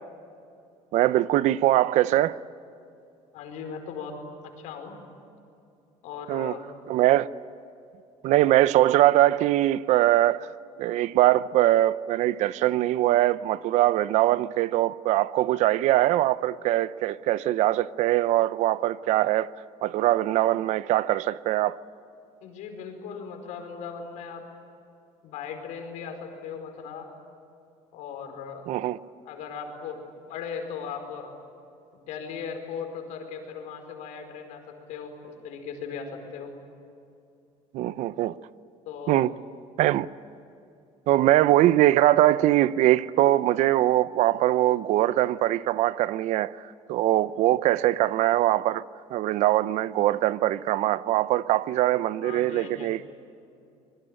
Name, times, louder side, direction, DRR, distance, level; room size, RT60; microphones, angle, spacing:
voice 1, 0.9-2.4 6.3-6.6 6.9-7.3 8.2-10.5 10.8-19.5 19.8-21.8 28.7-29.0 37.7-38.3 39.1-39.3 39.8-40.1 41.1-46.5 46.9-48.8 49.1-53.1, right 14 dB, 70° right, 0.7 m, -22 dB
voice 2, 3.3-4.2 4.4-5.0 6.0-6.6 22.4-24.4 25.2-27.1 27.9-28.6 29.2-30.0 30.3-31.3 31.9-36.5 38.8-39.2 47.6-47.7 52.2-52.9, left 6 dB, 85° left, 4.9 m, -38 dB
25.5 x 22.0 x 9.0 m
cardioid pair, 130°, 12 cm